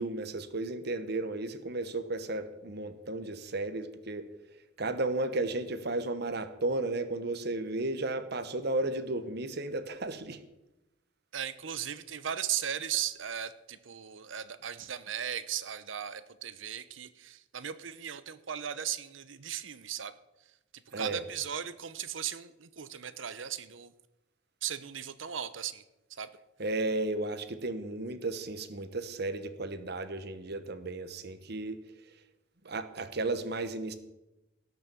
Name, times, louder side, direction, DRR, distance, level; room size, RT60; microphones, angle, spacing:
voice 1, 0.0-4.3 4.8-10.4 20.9-21.2 26.6-31.8 32.6-33.9, right 2 dB, 60° right, 11 dB, 1.2 m, -34 dB
voice 2, 11.3-20.1 21.0-23.9 24.6-25.8 26.1-26.3, right 9 dB, 80° right, 14 dB, 0.9 m, -37 dB
18.0 x 6.7 x 7.0 m, 0.97 s
head